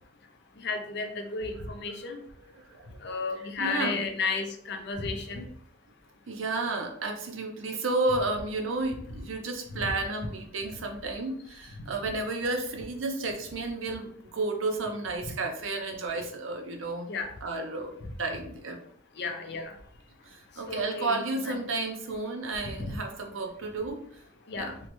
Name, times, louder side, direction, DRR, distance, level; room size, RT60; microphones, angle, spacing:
voice 1, 0.6-2.2 3.0-5.5 9.7-9.9 16.1-16.2 17.1-17.3 19.2-19.7 20.7-21.5 22.6-23.0 24.5-24.8, left 4 dB, 55° left, 5 dB, 0.4 m, -33 dB
voice 2, 2.6-3.1 3.6-4.0 6.3-17.1 17.4-17.9 18.2-18.8 20.2-24.2 24.6-24.7, right 3 dB, 80° right, 2 dB, 0.6 m, -32 dB
3.0 x 2.2 x 2.9 m, 0.63 s
head